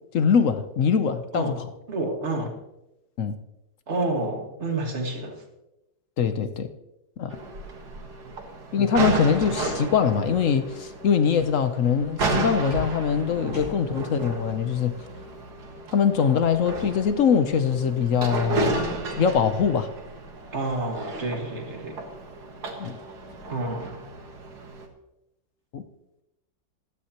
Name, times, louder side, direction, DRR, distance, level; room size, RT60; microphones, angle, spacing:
voice 1, 0.1-1.7 3.2-3.3 6.2-6.7 7.2-7.4 8.7-14.9 15.9-18.7 19.2-19.9 22.8-23.0 25.7-25.8, left 6 dB, 55° left, 0.9 m, -23 dB
voice 2, 1.9-2.5 3.9-5.4 8.2-8.3 20.5-22.0 23.5-23.9, right 2 dB, 40° right, 2.1 m, -29 dB
sound 1, 7.3-24.9, right 2 dB, 60° right, 2.0 m, -33 dB
sound 2, 9.1-9.9 10.2-10.6 12.7-14.1, left 4 dB, 70° left, 5.1 m, -40 dB
15.0 x 13.0 x 3.0 m
omnidirectional pair, 2.0 m